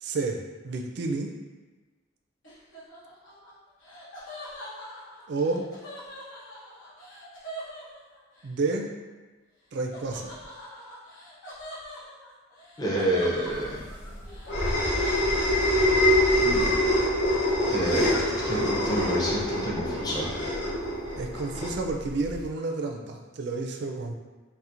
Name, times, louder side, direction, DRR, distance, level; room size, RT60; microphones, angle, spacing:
voice 1, 0.0-0.4 0.6-1.3 5.3-5.7 8.4-8.9 9.7-10.3 21.2-24.1, right 3 dB, 60° right, 2 dB, 0.4 m, -30 dB
Laughter, 2.4-8.5 9.9-16.9 17.2-18.6, equal, 85° left, 1.0 m, -43 dB
voice 2, 12.8-13.9 16.3-16.8 17.7-20.3, right 1 dB, 20° left, -5 dB, 0.5 m, -29 dB
sound 1, 13.6-22.4, left 1 dB, 60° left, 0.6 m, -25 dB
4.2 x 2.1 x 2.5 m, 1.3 s
head